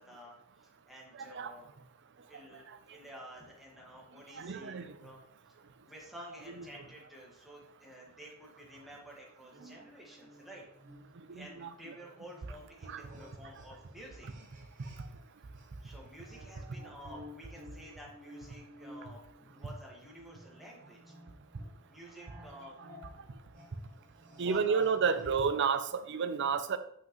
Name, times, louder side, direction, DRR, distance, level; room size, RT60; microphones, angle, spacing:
voice 1, 0.0-1.7 2.3-5.2 5.5-5.6 5.8-10.6 11.3-14.3 15.8-21.1 21.9-22.8 23.1-23.2 24.3-25.7, equal, ahead, -3 dB, 1.7 m, -51 dB
voice 2, 1.1-1.6 2.3-2.4 2.7-2.8 4.3-5.0 6.6-6.7 9.6-9.8 11.2-11.9 12.8-13.1 14.8-14.9 24.4-26.8, right 5 dB, 55° right, 11 dB, 0.5 m, -32 dB
sound 1, 9.5-15.3 15.5-25.5, equal, 35° right, 1.5 m, -55 dB
7.4 x 6.0 x 3.1 m, 0.70 s
head